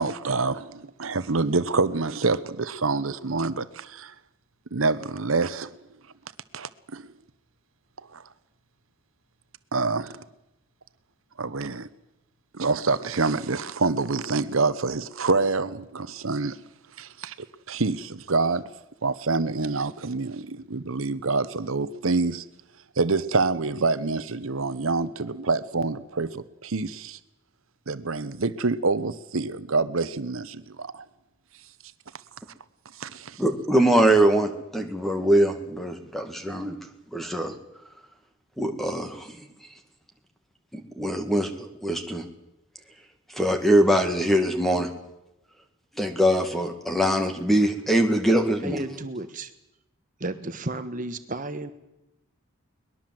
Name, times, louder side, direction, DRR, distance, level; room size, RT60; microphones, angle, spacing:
voice 1, 0.0-4.1 4.7-5.7 6.5-7.1 8.1-8.2 9.7-10.2 11.4-11.9 12.5-16.6 17.0-17.3 17.7-18.6 19.0-22.4 23.0-27.2 27.9-31.0 33.0-33.4, right 3 dB, 75° right, 13 dB, 1.0 m, -26 dB
voice 2, 33.4-36.8 37.1-37.5 38.6-39.3 40.7-42.2 43.3-44.9 46.0-48.8, right 1 dB, ahead, 5 dB, 2.1 m, -22 dB
voice 3, 48.6-49.5 50.2-51.7, right 2 dB, 40° right, 9 dB, 1.2 m, -33 dB
22.5 x 20.5 x 7.7 m, 0.91 s
head